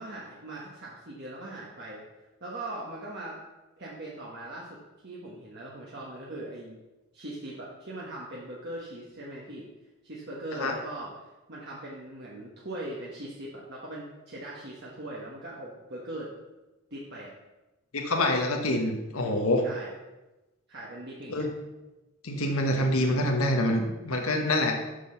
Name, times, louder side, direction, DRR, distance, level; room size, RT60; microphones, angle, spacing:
voice 1, 0.0-2.0 2.4-3.4 3.8-6.8 7.1-9.7 10.0-16.3 16.9-17.3 19.6-19.9 20.7-21.5, right 1 dB, 50° right, -4 dB, 1.4 m, -40 dB
voice 2, 17.9-19.6 21.3-21.5 22.2-24.7, left 1 dB, 75° left, 2 dB, 1.2 m, -26 dB
8.2 x 6.3 x 5.7 m, 1.1 s
head